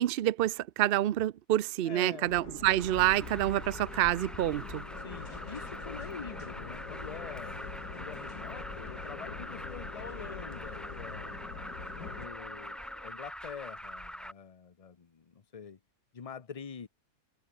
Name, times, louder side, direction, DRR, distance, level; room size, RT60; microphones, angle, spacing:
voice 1, 0.0-4.8, right 14 dB, 85° right, 0.5 m, -28 dB
voice 2, 1.8-2.3 5.0-7.6 7.9-11.4 12.1-12.8 13.0-15.8 16.1-16.9, left 6 dB, 30° left, 0.8 m, -45 dB
sound 1, 2.2-12.3, left 5 dB, 85° left, 3.0 m, -45 dB
Alarm, 2.8-14.3, equal, ahead, 0.4 m, -44 dB
sound 2, 4.9-13.1, left 3 dB, 50° left, 3.1 m, -50 dB
omnidirectional pair, 1.7 m